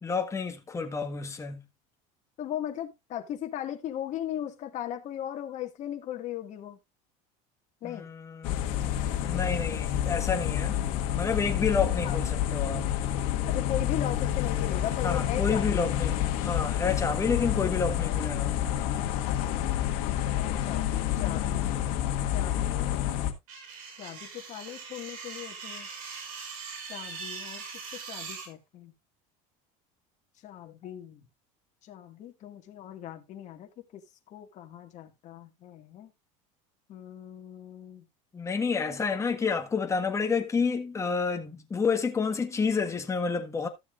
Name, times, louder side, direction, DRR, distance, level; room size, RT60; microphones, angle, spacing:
voice 1, 0.0-1.6 7.8-8.8 9.2-10.8 11.1-12.9 15.0-18.6 38.3-43.7, left 5 dB, 15° left, 1.4 m, -29 dB
voice 2, 2.4-6.8 7.8-8.1 8.7-9.0 12.0-12.2 13.5-15.9 20.3-21.7 22.3-23.0 24.0-25.9 26.9-27.6 28.1-28.9 30.4-31.2 31.9-33.7 34.3-36.1 36.9-38.0, left 11 dB, 45° left, 1.8 m, -38 dB
sound 1, 8.4-23.3, left 11 dB, 70° left, 1.6 m, -29 dB
sound 2, 23.5-28.5, right 5 dB, 80° right, 4.4 m, -41 dB
14.0 x 7.1 x 2.4 m
supercardioid pair, 130°, 17 cm